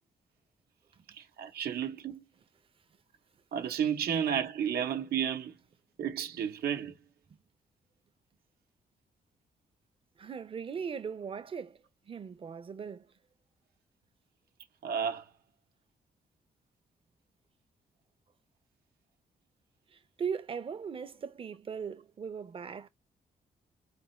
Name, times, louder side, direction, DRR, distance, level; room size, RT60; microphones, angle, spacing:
voice 1, 1.1-2.2 3.5-5.6 6.0-7.0 14.8-15.3, right 8 dB, 85° right, 0.9 m, -32 dB
voice 2, 10.2-13.1 19.9-22.9, right 6 dB, 35° right, 0.6 m, -39 dB
4.2 x 3.4 x 3.1 m
wide cardioid pair, 145°, 16 cm